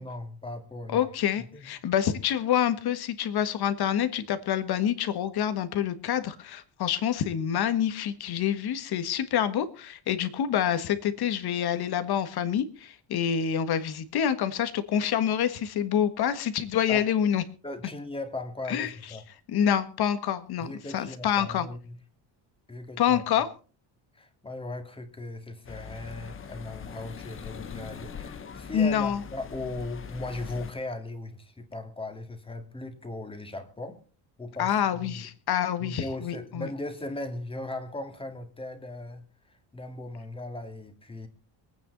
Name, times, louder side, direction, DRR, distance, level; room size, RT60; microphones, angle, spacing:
voice 1, 0.0-1.1 1.4-1.7 16.9-17.0 17.6-19.2 20.6-22.0 22.7-23.2 24.1-34.0 34.4-35.3 35.8-41.3, left 2 dB, 10° left, 6 dB, 2.2 m, -38 dB
voice 2, 0.9-17.4 18.7-18.9 19.5-20.7 20.9-21.7 23.0-23.5 28.7-29.2 34.6-36.7, left 9 dB, 55° left, 11 dB, 1.7 m, -27 dB
sound 1, 25.6-30.7, left 7 dB, 30° left, 1.0 m, -42 dB
24.0 x 9.2 x 4.0 m, 0.37 s
cardioid pair, 165°, 45 cm